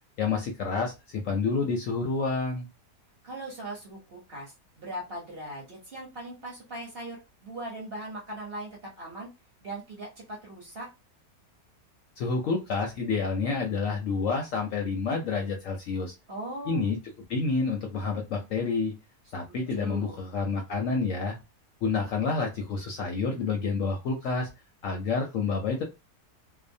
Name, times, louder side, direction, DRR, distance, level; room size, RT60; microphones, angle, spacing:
voice 1, 0.2-2.7 12.2-16.1 16.7-17.0 17.3-18.9 19.3-21.4 21.8-24.5 24.8-25.8, left 4 dB, 70° left, 2 dB, 0.8 m, -29 dB
voice 2, 3.2-9.3 9.6-10.9 16.3-16.9 19.5-20.2, right 1 dB, 45° right, -3 dB, 0.9 m, -39 dB
2.6 x 2.1 x 2.6 m, 0.25 s
omnidirectional pair, 1.7 m